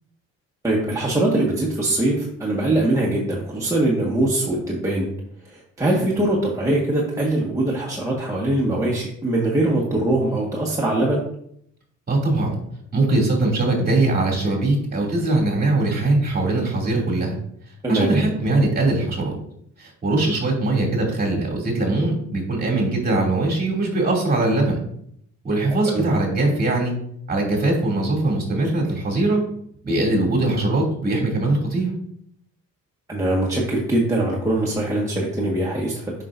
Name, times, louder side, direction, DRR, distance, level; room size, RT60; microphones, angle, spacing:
voice 1, 0.6-5.1 5.4-11.2 17.8-18.1 25.9-26.1 33.1-36.1, right 1 dB, 10° right, -4 dB, 1.5 m, -22 dB
voice 2, 12.1-12.6 12.9-17.3 17.9-19.3 19.8-24.8 25.4-26.9 27.3-29.4 29.8-31.9, right 2 dB, 30° right, -2 dB, 2.7 m, -21 dB
7.4 x 5.6 x 2.6 m, 0.70 s
cardioid pair, 90°, 30 cm